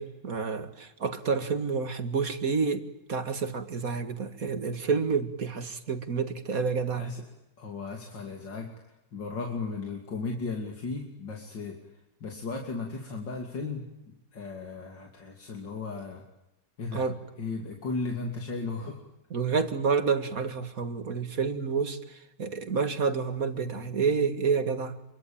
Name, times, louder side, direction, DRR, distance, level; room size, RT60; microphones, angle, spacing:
voice 1, 0.0-7.1 16.9-17.2 19.3-22.0 22.4-24.9, right 5 dB, 50° right, 9 dB, 2.3 m, -29 dB
voice 2, 6.9-7.2 7.6-8.7 9.1-11.8 12.2-16.2 16.8-17.1 17.4-19.0, left 3 dB, 85° left, 1 dB, 3.5 m, -35 dB
27.5 x 23.5 x 8.9 m, 0.89 s
omnidirectional pair, 1.9 m